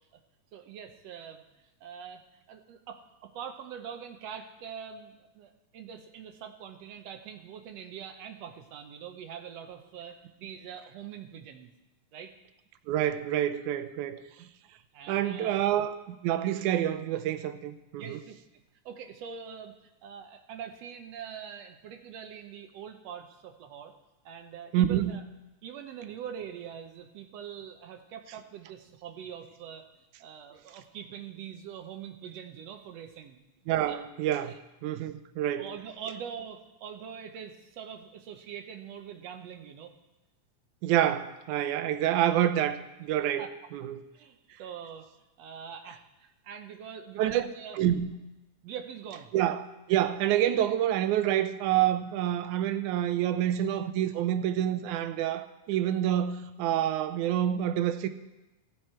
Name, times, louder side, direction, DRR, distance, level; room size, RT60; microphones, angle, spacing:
voice 1, 0.5-1.4 1.8-2.2 2.5-11.7 12.1-12.3 14.9-15.6 18.0-19.8 20.0-23.9 24.3-25.2 25.6-33.4 33.9-34.0 34.5-34.6 35.6-39.9 43.4-43.5 44.1-45.1 45.4-47.8 48.6-49.3, right 8 dB, 70° right, 6 dB, 1.8 m, -43 dB
voice 2, 12.9-14.5 15.1-18.2 24.7-25.1 33.7-34.5 34.8-35.7 40.8-43.5 43.7-44.0 47.2-47.5 47.7-48.1 49.3-58.1, right 11 dB, 90° right, 11 dB, 2.1 m, -27 dB
16.0 x 7.8 x 4.4 m, 1.0 s
omnidirectional pair, 3.4 m